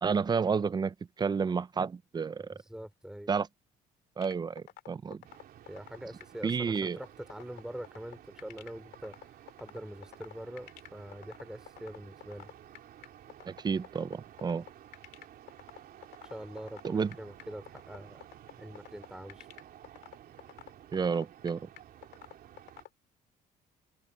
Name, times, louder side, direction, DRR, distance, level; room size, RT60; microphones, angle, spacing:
voice 1, 0.0-2.5 3.3-3.5 4.2-5.2 6.4-7.0 13.5-14.6 16.8-17.1 20.9-21.6, right 5 dB, 25° right, 0.6 m, -31 dB
voice 2, 2.5-3.3 5.7-9.2 9.6-12.5 16.2-18.2 18.6-19.5, right 1 dB, 5° right, 3.4 m, -44 dB
sound 1, 4.2-22.9, left 13 dB, 75° left, 2.2 m, -48 dB
sound 2, 5.2-22.9, right 11 dB, 60° right, 3.3 m, -54 dB
cardioid pair, 110°, 17 cm